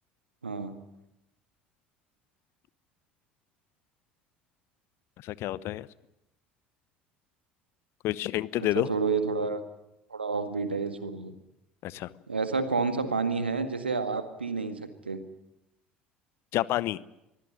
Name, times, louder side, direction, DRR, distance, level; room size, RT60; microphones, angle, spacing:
voice 1, 0.4-0.8 8.6-9.6 10.1-11.3 12.3-14.8 15.1-15.2, right 4 dB, 80° right, 9 dB, 1.8 m, -29 dB
voice 2, 5.2-5.9 8.0-8.9 11.8-12.1 16.5-17.0, left 15 dB, 50° left, 20 dB, 0.8 m, -29 dB
23.5 x 16.0 x 9.9 m, 0.90 s
figure-of-eight pair, 65°, 6 cm